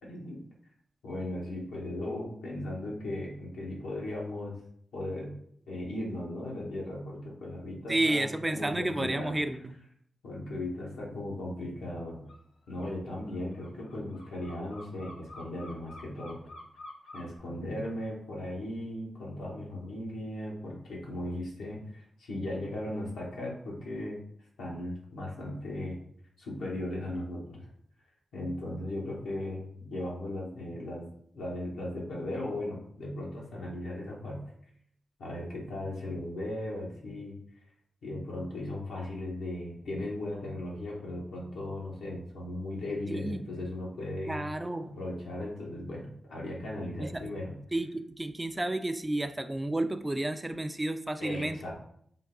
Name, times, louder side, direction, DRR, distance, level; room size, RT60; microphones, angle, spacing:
voice 1, 0.0-0.4 1.0-4.6 4.9-5.3 5.7-9.4 10.2-12.2 12.7-16.4 17.1-24.2 24.6-26.0 26.4-27.7 28.3-31.1 31.3-34.4 35.2-37.4 38.0-44.5 44.8-47.5 51.2-51.7, left 1 dB, 90° left, -4 dB, 1.1 m, -37 dB
voice 2, 7.9-9.7 43.1-43.4 44.3-44.9 47.0-47.2 47.7-51.6, right 1 dB, 20° right, 9 dB, 0.4 m, -31 dB
sound 1, 12.3-12.4 12.7-17.4, left 2 dB, 70° left, 0.7 m, -48 dB
3.7 x 2.3 x 3.7 m, 0.65 s
supercardioid pair, 45°, 0 cm